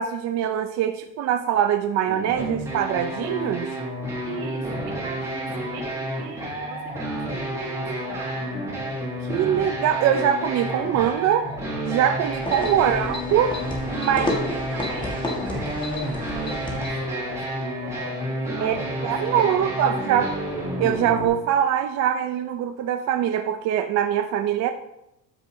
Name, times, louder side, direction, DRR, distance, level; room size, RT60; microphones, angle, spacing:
voice 1, 0.0-3.7 9.3-11.5 11.9-13.6 13.9-14.3 18.6-18.8 19.0-20.3 20.8-24.7, right 9 dB, 45° right, 7 dB, 0.5 m, -23 dB
sound 1, 2.1-21.3, equal, 10° right, 2.7 m, -30 dB
voice 2, 4.2-8.6 12.8-13.4 14.1-17.4 17.8-20.4, right 4 dB, 75° right, 3 dB, 2.2 m, -41 dB
sound 2, 12.2-17.1, left 2 dB, 15° left, 1.5 m, -31 dB
13.0 x 6.4 x 2.7 m, 0.88 s
cardioid pair, 160°, 37 cm